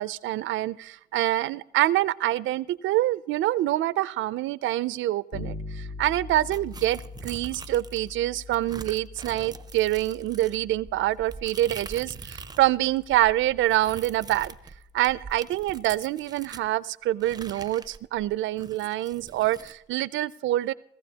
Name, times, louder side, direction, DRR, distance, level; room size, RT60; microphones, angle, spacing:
voice 1, 0.0-14.5 14.9-20.7, right 15 dB, 75° right, 18 dB, 0.4 m, -26 dB
Bass guitar, 5.3-15.0, left 3 dB, 65° left, 1.1 m, -43 dB
sound 1, 6.5-8.1 8.5-12.7 13.0-16.7 17.2-19.8, right 4 dB, 20° right, 0.5 m, -43 dB
17.5 x 14.5 x 2.8 m, 0.78 s
cardioid pair, 90°, 20 cm